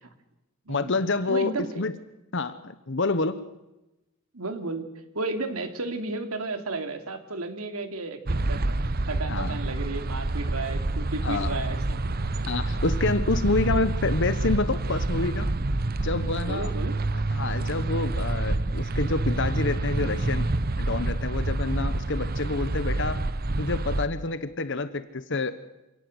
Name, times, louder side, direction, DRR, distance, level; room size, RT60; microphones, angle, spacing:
voice 1, 0.7-1.9 2.3-3.4 9.3-9.5 11.2-11.6 12.5-15.5 16.0-16.7 17.3-20.5 20.8-23.2 23.6-25.5, left 3 dB, 55° left, 12 dB, 1.1 m, -28 dB
voice 2, 1.3-1.8 4.3-4.8 5.1-12.1 16.4-16.9, right 2 dB, 90° right, 7 dB, 2.9 m, -33 dB
sound 1, 8.2-24.1, right 2 dB, 45° right, 0.9 m, -27 dB
27.5 x 18.0 x 8.0 m, 0.98 s
head